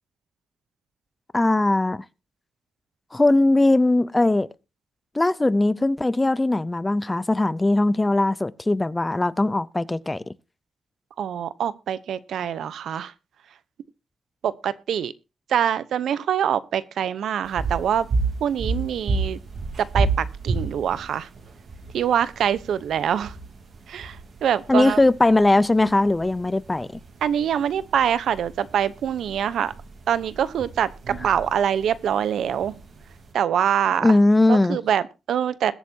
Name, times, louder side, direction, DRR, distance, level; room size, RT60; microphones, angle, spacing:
voice 1, 1.3-2.0 3.1-4.5 5.1-10.2 24.7-26.9 34.0-34.8, left 2 dB, 15° left, 0.6 m, -20 dB
voice 2, 11.2-13.1 14.4-15.1 15.5-18.1 18.4-19.4 19.8-21.3 21.9-23.4 23.9-25.0 27.2-29.7 30.1-32.7 33.3-34.2 34.5-35.7, right 9 dB, 85° right, 0.8 m, -24 dB
sound 1, 17.4-33.3, right 3 dB, 55° right, 3.3 m, -32 dB
21.5 x 8.2 x 2.7 m
wide cardioid pair, 125°, 0 cm